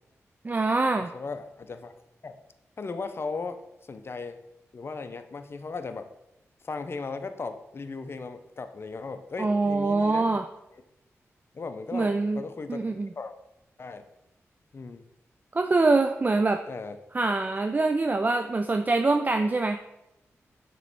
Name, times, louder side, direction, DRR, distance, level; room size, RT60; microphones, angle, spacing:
voice 1, 0.4-1.1 9.4-10.5 11.9-12.4 12.7-13.1 15.5-16.6 17.1-19.8, right 3 dB, 30° right, 6 dB, 0.4 m, -24 dB
voice 2, 1.0-1.9 2.2-2.3 2.8-4.4 4.7-6.1 6.6-10.4 11.5-12.9 13.2-13.3 13.8-14.0 14.7-15.1 16.7-17.0, left 4 dB, 50° left, 9 dB, 0.5 m, -37 dB
6.7 x 3.1 x 4.6 m, 0.89 s
cardioid pair, 60°, 5 cm